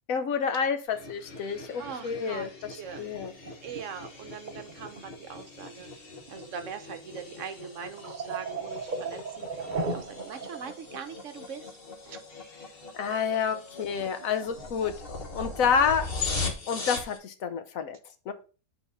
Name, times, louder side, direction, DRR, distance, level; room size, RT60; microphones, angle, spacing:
voice 1, 0.1-3.3 12.9-16.1 16.7-18.0 18.3-18.4, left 6 dB, 70° left, 9 dB, 1.2 m, -29 dB
sound 1, 0.9-17.2, left 3 dB, 45° left, 1.3 m, -40 dB
voice 2, 1.8-2.5 2.8-3.1 3.6-5.9 6.3-11.7 12.0-12.2, right 7 dB, 65° right, 8 dB, 1.0 m, -41 dB
sound 2, 2.8-3.9 4.5-5.1 5.7-5.9 6.2-6.4 6.9-7.0 7.5-10.8 11.2-11.3 13.5-13.6 13.9-14.1 14.6-14.8, right 3 dB, 40° right, 0.9 m, -36 dB
7.9 x 4.1 x 4.0 m, 0.36 s
omnidirectional pair, 1.5 m